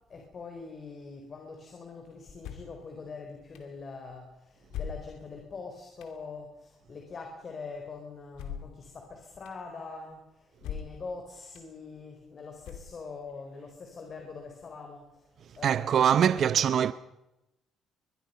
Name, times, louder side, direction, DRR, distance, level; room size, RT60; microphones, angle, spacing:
voice 1, 0.1-10.2 10.6-15.0 15.6-16.9, left 4 dB, 45° left, 4.3 m, -43 dB
sound 1, 2.4-2.8 3.5-3.6 4.7-5.4 6.0-6.2 8.3-8.8 9.5-9.6 10.6-11.1 11.5-11.6 12.6-13.2, left 8 dB, 90° left, 2.7 m, -40 dB
voice 2, 15.6-16.9, right 9 dB, 60° right, 0.6 m, -23 dB
22.5 x 22.5 x 5.7 m
cardioid pair, 90°, 0 cm